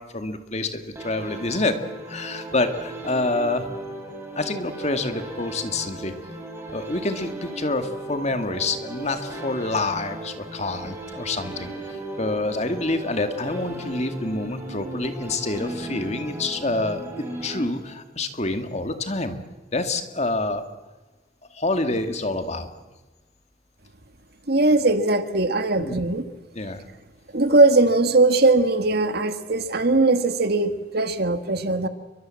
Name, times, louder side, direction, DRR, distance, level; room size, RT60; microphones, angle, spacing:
voice 1, 0.0-1.8 2.1-3.7 4.4-6.1 6.7-17.1 17.4-19.4 19.7-20.7 21.5-22.7 25.8-25.9 26.5-26.8, left 2 dB, 35° left, 8 dB, 2.2 m, -27 dB
Kyoto Chords Synth Pattern, 1.0-18.2, right 1 dB, 15° right, 5.7 m, -36 dB
voice 2, 24.5-26.2 27.3-31.9, right 2 dB, 55° right, 9 dB, 1.9 m, -20 dB
29.0 x 23.5 x 7.8 m, 1.2 s
head